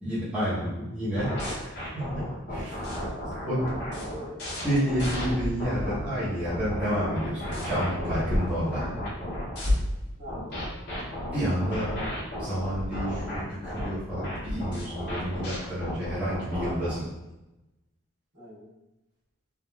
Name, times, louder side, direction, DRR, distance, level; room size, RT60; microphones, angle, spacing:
voice 1, 0.0-2.9 3.4-3.6 4.6-8.9 11.3-11.9 12.4-17.0, equal, 5° right, -13 dB, 0.8 m, -30 dB
sound 1, 1.1-6.0 6.4-9.7 10.3-17.0, equal, 50° left, 0.7 m, -34 dB
voice 2, 3.1-4.4 10.2-10.6 18.3-18.7, equal, 55° right, -11 dB, 1.3 m, -43 dB
sound 2, 4.9-16.6, left 1 dB, 30° right, 1.1 m, -35 dB
3.4 x 2.3 x 2.3 m, 1.0 s
head